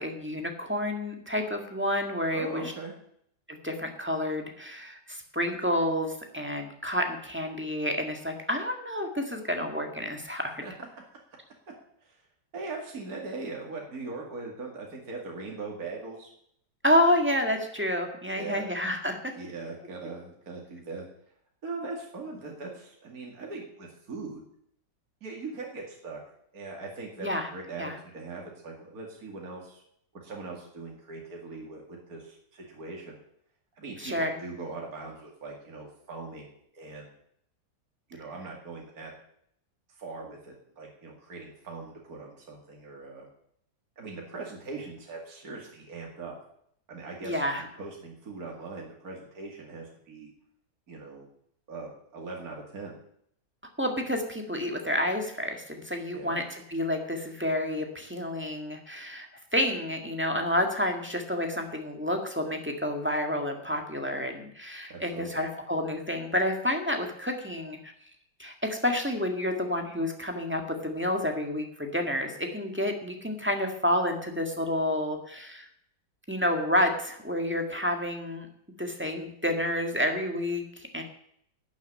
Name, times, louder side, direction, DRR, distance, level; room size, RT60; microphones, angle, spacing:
voice 1, 0.0-2.7 3.5-10.6 16.8-19.3 27.2-27.5 27.8-27.9 34.0-34.4 47.2-47.6 53.8-59.3 59.5-67.9 68.4-75.7 76.3-78.5 78.8-81.0, left 1 dB, 5° right, 3 dB, 1.7 m, -29 dB
voice 2, 2.3-2.9 10.6-10.7 12.0-12.2 12.5-16.3 18.3-18.7 19.3-21.0 21.6-24.4 25.2-26.2 26.5-29.8 30.1-33.2 33.8-37.1 38.1-39.1 40.0-43.3 44.0-46.3 46.9-47.4 47.8-50.3 50.9-51.3 51.7-53.0 56.1-56.5 64.9-65.4, right 3 dB, 60° right, -1 dB, 2.8 m, -40 dB
11.5 x 7.4 x 8.8 m, 0.69 s
omnidirectional pair, 1.8 m